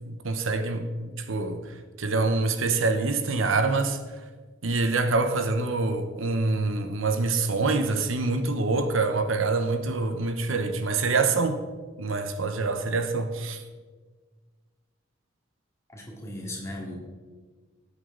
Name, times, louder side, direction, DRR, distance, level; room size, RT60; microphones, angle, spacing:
voice 1, 0.1-4.0 4.6-11.6 12.0-13.6, right 3 dB, 75° right, 0.9 m, -26 dB
voice 2, 15.9-17.0, left 1 dB, 15° left, 2.3 m, -37 dB
19.0 x 8.3 x 3.8 m
head